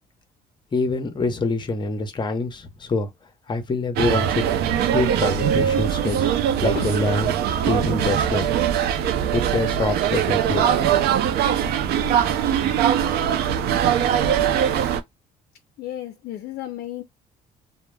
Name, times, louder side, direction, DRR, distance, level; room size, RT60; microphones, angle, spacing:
voice 1, 0.7-3.1 3.5-4.5 4.9-7.4 7.7-8.5 9.3-10.7, left 3 dB, 25° left, 0.7 m, -25 dB
sound 1, 4.0-15.0, right 9 dB, 70° right, 0.4 m, -21 dB
voice 2, 14.7-15.0 15.8-17.0, left 13 dB, 65° left, 0.4 m, -34 dB
2.1 x 2.1 x 3.1 m
cardioid pair, 110°, 17 cm